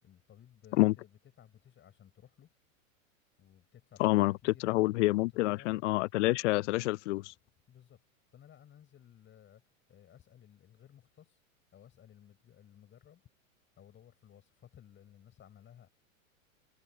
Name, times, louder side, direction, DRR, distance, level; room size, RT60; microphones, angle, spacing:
voice 1, 0.0-2.5 3.4-5.9 7.7-8.0 8.3-11.4 11.7-13.2 13.8-15.9, left 10 dB, 30° left, 7.0 m, -57 dB
voice 2, 4.0-7.3, left 19 dB, 60° left, 0.5 m, -27 dB
hypercardioid pair, 110°, 41 cm